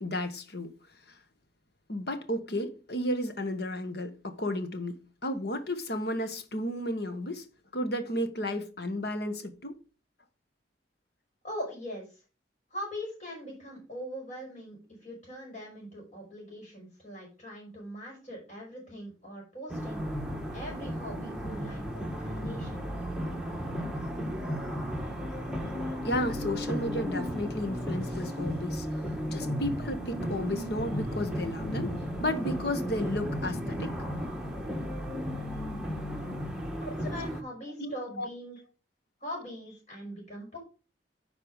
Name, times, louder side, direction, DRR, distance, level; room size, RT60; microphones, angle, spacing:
voice 1, 0.0-0.7 1.1-1.2 1.9-7.4 7.7-9.8 26.0-28.9 29.3-33.9 37.8-38.6, left 1 dB, 60° left, 1.4 m, -33 dB
voice 2, 11.4-12.2 12.7-20.1 20.5-22.9 36.8-38.6 39.2-40.6, equal, 40° left, 4.8 m, -41 dB
sound 1, 19.7-37.4, equal, 5° right, 1.3 m, -34 dB
9.8 x 4.8 x 5.2 m
head